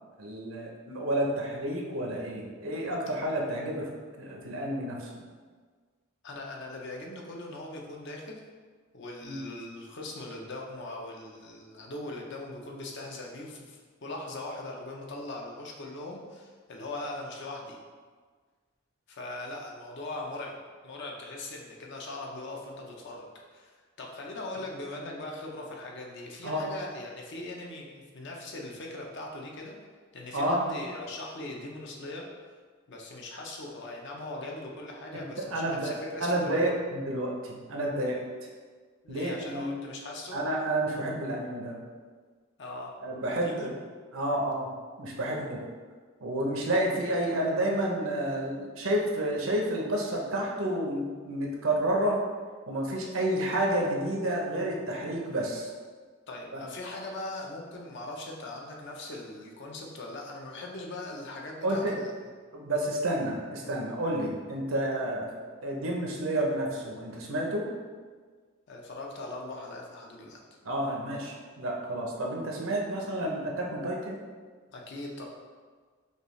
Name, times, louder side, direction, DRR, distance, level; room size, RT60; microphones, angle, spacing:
voice 1, 0.2-3.9 4.2-5.1 9.2-9.4 26.4-26.6 30.3-30.6 35.1-38.2 39.1-39.7 40.3-41.8 43.0-43.8 44.1-44.7 45.0-45.6 46.2-52.2 52.7-55.7 56.5-56.6 61.6-61.9 62.5-65.3 65.6-67.7 70.6-74.2, right 1 dB, 75° right, -1 dB, 0.7 m, -30 dB
voice 2, 6.2-8.4 8.9-17.8 19.1-20.5 20.8-29.7 30.1-32.3 32.9-36.8 39.0-40.4 42.6-42.9 43.4-43.7 56.3-62.3 68.7-70.4 74.7-75.3, left 2 dB, 55° left, 0 dB, 0.6 m, -40 dB
5.2 x 2.4 x 3.1 m, 1.5 s
head